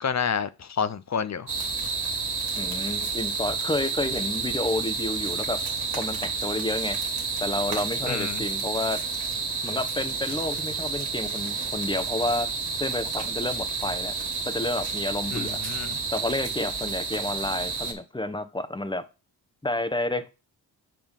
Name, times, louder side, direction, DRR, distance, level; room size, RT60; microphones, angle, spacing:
voice 1, 0.0-1.5 8.1-8.5 15.3-16.0, left 6 dB, 35° left, 0.7 m, -29 dB
sound 1, 1.5-17.9, right 4 dB, 55° right, 2.2 m, -30 dB
voice 2, 2.6-5.6 6.0-7.0 7.4-9.0 9.6-12.5 12.8-14.2 14.4-15.6 16.1-19.0 19.6-20.3, left 2 dB, 10° left, 1.2 m, -30 dB
7.6 x 3.5 x 5.3 m
hypercardioid pair, 40°, 47 cm